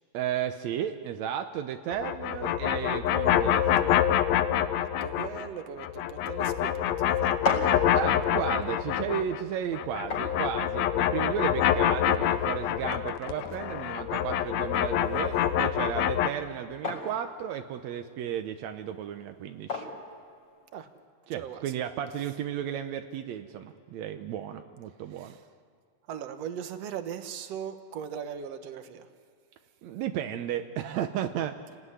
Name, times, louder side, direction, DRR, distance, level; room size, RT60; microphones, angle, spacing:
voice 1, 0.1-4.0 7.9-19.9 21.3-25.4 29.8-31.6, right 9 dB, 80° right, 7 dB, 1.5 m, -34 dB
sound 1, 1.9-5.5 5.8-9.4 9.7-16.3, left 10 dB, 85° left, 1.6 m, -26 dB
voice 2, 4.7-7.6 20.7-20.9 21.3-21.7 25.1-25.4 26.1-29.1, right 8 dB, 60° right, 8 dB, 1.8 m, -39 dB
sound 2, 7.2-21.1, left 3 dB, 40° left, 5.5 m, -40 dB
29.0 x 19.0 x 9.9 m, 2.2 s
omnidirectional pair, 4.3 m